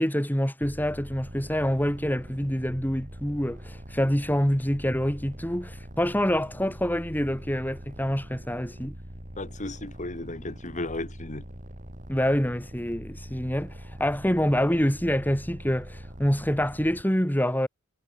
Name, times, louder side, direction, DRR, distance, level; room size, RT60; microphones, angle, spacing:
voice 1, 0.0-8.9 12.1-17.7, equal, 10° left, 5.5 m, -26 dB
sound 1, 0.6-17.0, equal, 40° right, 4.1 m, -43 dB
voice 2, 9.4-11.5, left 2 dB, 35° left, 2.6 m, -35 dB
head